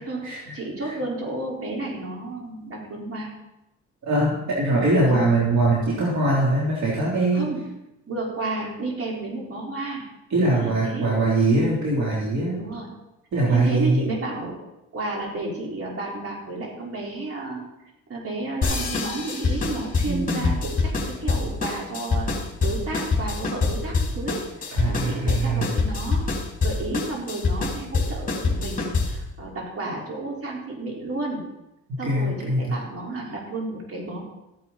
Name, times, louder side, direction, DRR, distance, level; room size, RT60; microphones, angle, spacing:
voice 1, 0.5-3.3 4.9-5.2 7.3-7.6 8.1-10.0 10.5-11.1 12.6-12.9 13.5-14.6 14.9-17.6 18.1-22.3 22.6-26.3 26.6-31.4 32.0-34.3, right 2 dB, 50° right, -3 dB, 4.3 m, -32 dB
voice 2, 4.1-7.5 10.3-12.6 13.3-14.0 20.1-20.6 24.7-25.7 32.0-32.7, right 2 dB, 65° right, -5 dB, 3.3 m, -22 dB
sound 1, 18.6-29.3, left 3 dB, 30° left, 3.4 m, -25 dB
14.5 x 9.5 x 4.1 m, 0.92 s
cardioid pair, 90°, 30 cm